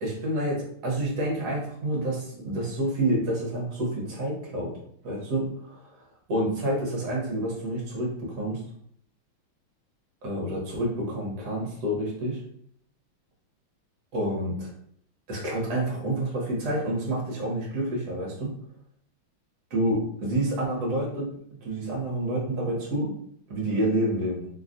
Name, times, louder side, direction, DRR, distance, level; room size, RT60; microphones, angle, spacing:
voice 1, 0.0-4.7 5.0-5.8 6.3-8.6 10.2-12.4 14.1-14.7 15.3-18.5 19.7-21.3 21.6-23.1 23.5-24.5, right 1 dB, 55° right, -3 dB, 1.4 m, -28 dB
3.5 x 2.3 x 2.5 m, 0.66 s
omnidirectional pair, 2.3 m